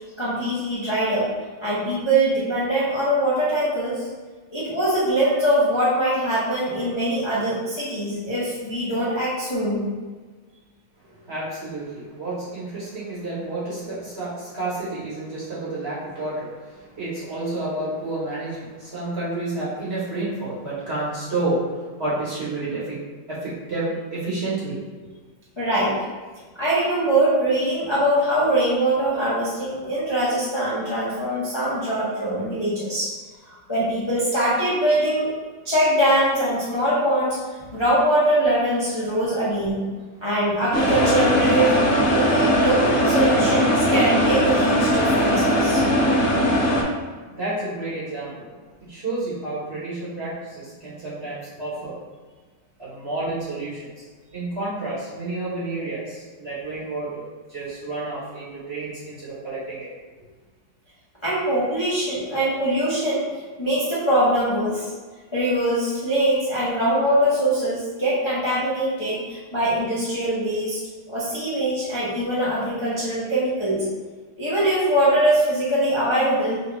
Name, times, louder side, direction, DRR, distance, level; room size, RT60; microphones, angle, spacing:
voice 1, 0.2-1.3 1.6-4.1 4.5-9.9 25.6-26.0 26.5-33.1 33.4-35.3 35.6-37.4 37.7-39.8 40.2-41.8 42.1-45.8 61.2-63.3 63.6-64.9 65.3-70.8 71.1-73.8 74.4-76.6, right 1 dB, 35° left, -10 dB, 0.4 m, -22 dB
voice 2, 11.1-23.0 23.3-25.0 46.4-48.5 48.8-52.0 52.8-54.0 54.3-59.9, right 2 dB, 40° right, -9 dB, 1.0 m, -30 dB
sound 1, 40.7-46.8, equal, 60° left, 0.8 m, -19 dB
5.5 x 2.3 x 3.3 m, 1.4 s
omnidirectional pair, 2.2 m